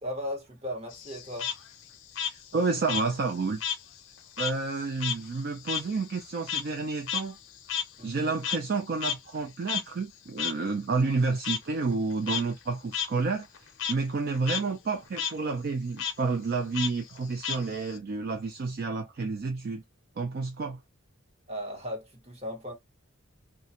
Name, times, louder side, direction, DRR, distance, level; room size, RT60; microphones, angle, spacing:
voice 1, 0.0-1.5 8.0-8.4 21.5-22.7, equal, 30° right, 0.9 m, -37 dB
Frog, 0.9-3.8 4.1-8.8 9.0-9.1 9.7-9.8 10.4-10.5 11.4-11.6 12.1-12.4 12.9-13.1 13.4-13.9 14.3-14.6 14.9-15.3 16.0-16.1 16.7-18.0, left 8 dB, 65° left, 0.5 m, -32 dB
voice 2, 2.2-3.6 4.4-7.4 8.0-13.5 13.9-19.8 20.2-20.8, right 4 dB, 45° right, 0.4 m, -30 dB
2.5 x 2.2 x 2.8 m
head